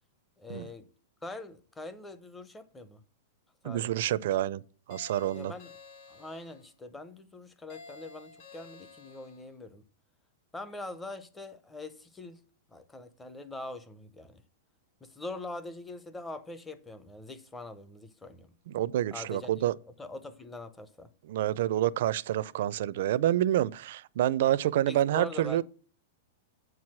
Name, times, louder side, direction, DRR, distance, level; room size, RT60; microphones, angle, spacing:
voice 1, 0.4-0.9 1.2-3.0 3.6-3.9 5.3-5.8 6.1-9.8 10.5-12.4 12.7-14.4 15.0-18.5 19.1-19.6 20.0-21.1 24.9-25.6, left 2 dB, 5° left, 0.6 m, -43 dB
voice 2, 3.6-4.6 4.9-5.5 18.7-19.8 21.2-25.6, right 12 dB, 55° right, 0.4 m, -28 dB
sound 1, 4.9-6.7 7.7-9.5, left 3 dB, 50° left, 2.7 m, -51 dB
7.9 x 4.7 x 7.3 m
supercardioid pair, 170°, 0 cm